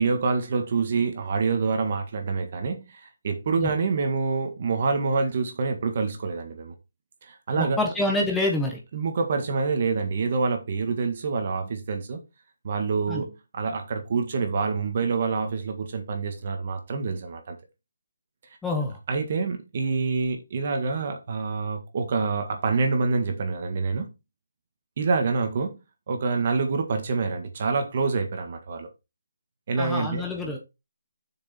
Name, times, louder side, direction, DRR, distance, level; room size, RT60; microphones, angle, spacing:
voice 1, 0.0-6.7 7.2-7.8 8.9-12.2 12.6-17.6 19.1-24.1 25.0-25.8 26.1-28.9 29.7-30.2, right 4 dB, 30° right, 1.8 m, -26 dB
voice 2, 7.6-8.8 13.1-13.2 18.6-19.0 29.8-30.6, left 2 dB, 5° left, 1.3 m, -26 dB
6.6 x 6.5 x 4.4 m
hypercardioid pair, 175°, 0 cm